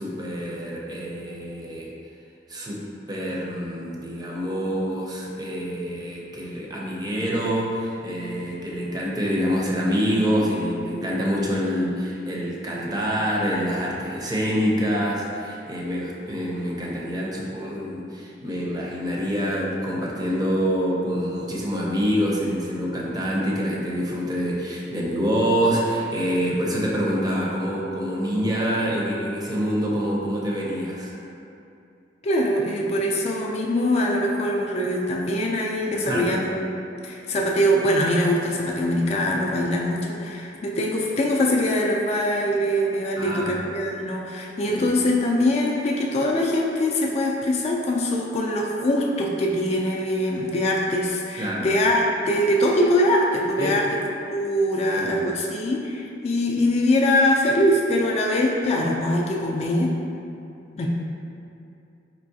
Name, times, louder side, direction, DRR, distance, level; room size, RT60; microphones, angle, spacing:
voice 1, 0.0-1.9 2.5-2.8 3.1-31.1 35.9-36.4 43.2-43.6 44.6-44.8 51.4-51.7 53.6-53.8 54.9-55.3, equal, 20° right, -4 dB, 0.5 m, -26 dB
voice 2, 32.2-36.8 37.0-53.9 54.3-59.9 60.8-60.9, left 1 dB, 35° left, -1 dB, 0.3 m, -23 dB
4.5 x 3.1 x 2.6 m, 2.6 s
head